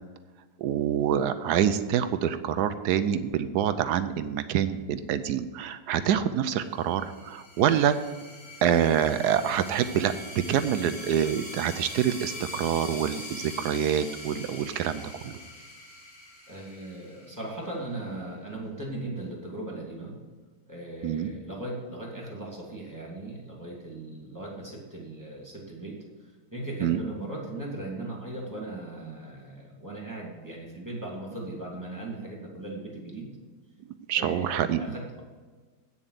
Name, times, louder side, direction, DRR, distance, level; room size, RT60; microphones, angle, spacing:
voice 1, 0.6-8.0 8.6-10.1 10.5-15.3 21.0-21.3 26.8-27.0 34.1-34.8, right 9 dB, 75° right, 11 dB, 1.0 m, -26 dB
sound 1, 6.6-17.9, left 2 dB, 40° left, 2.2 m, -43 dB
voice 2, 16.5-20.1 20.7-33.3 34.1-35.2, right 2 dB, 10° right, -2 dB, 2.5 m, -38 dB
9.1 x 7.2 x 6.6 m, 1.4 s
omnidirectional pair, 2.1 m